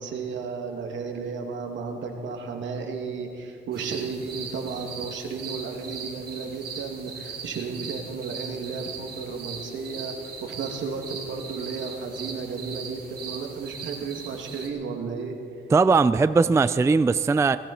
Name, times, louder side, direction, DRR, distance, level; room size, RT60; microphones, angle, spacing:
voice 1, 0.0-15.4, right 5 dB, 70° right, 2 dB, 2.4 m, -33 dB
sound 1, 3.7-14.7, right 5 dB, 50° right, 4.4 m, -39 dB
voice 2, 15.7-17.6, right 4 dB, 15° right, 13 dB, 0.4 m, -19 dB
19.0 x 17.0 x 4.4 m, 2.4 s
cardioid pair, 90°, 20 cm